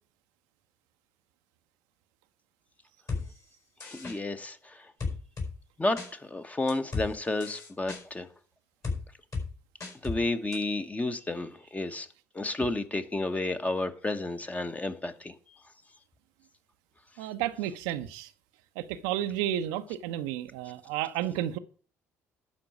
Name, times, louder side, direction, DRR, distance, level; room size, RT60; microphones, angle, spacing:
sound 1, 3.1-3.2 3.8-4.2 5.0-5.5 6.0-6.1 6.7-7.1 7.4-8.0 8.8-9.0 9.3-9.5 9.8-10.2 10.5-10.6, left 4 dB, 40° left, 4.8 m, -33 dB
voice 1, 3.8-4.9 5.8-8.3 10.0-12.1 12.3-15.3, left 2 dB, 20° left, 1.2 m, -31 dB
voice 2, 17.2-18.3 18.8-21.6, right 12 dB, 75° right, 0.7 m, -32 dB
11.5 x 4.7 x 7.7 m
hypercardioid pair, 55°, 8 cm